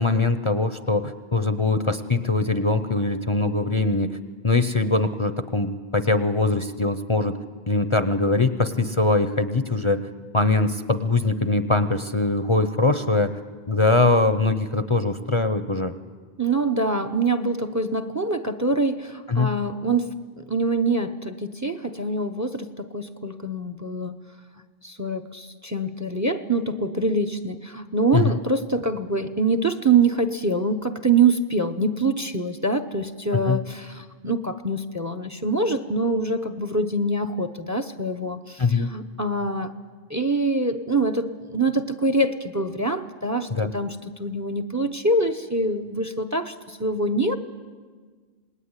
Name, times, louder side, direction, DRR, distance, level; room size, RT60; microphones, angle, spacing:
voice 1, 0.0-4.2 4.4-7.4 7.7-10.1 10.3-13.4 13.7-15.9 19.3-19.5 28.1-28.4 33.3-33.6 38.6-38.9 43.5-43.7, left 3 dB, 30° left, 10 dB, 0.8 m, -22 dB
voice 2, 16.4-24.2 24.8-39.7 40.1-47.4, right 2 dB, 20° right, 10 dB, 0.9 m, -25 dB
26.5 x 20.0 x 9.8 m, 1.5 s
omnidirectional pair, 1.1 m